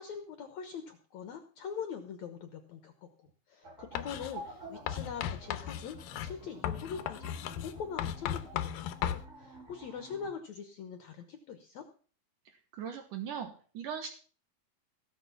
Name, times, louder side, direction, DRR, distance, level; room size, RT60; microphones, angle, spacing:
voice 1, 0.0-2.9 3.5-11.8, left 6 dB, 65° left, 7 dB, 2.1 m, -43 dB
sound 1, 3.6-10.3, right 1 dB, 20° right, 5.7 m, -50 dB
Writing, 4.0-4.3 4.9-9.3, left 10 dB, 80° left, 2.5 m, -37 dB
voice 2, 12.5-14.1, right 7 dB, 70° right, 5 dB, 2.7 m, -40 dB
17.5 x 6.5 x 7.1 m, 0.41 s
omnidirectional pair, 4.0 m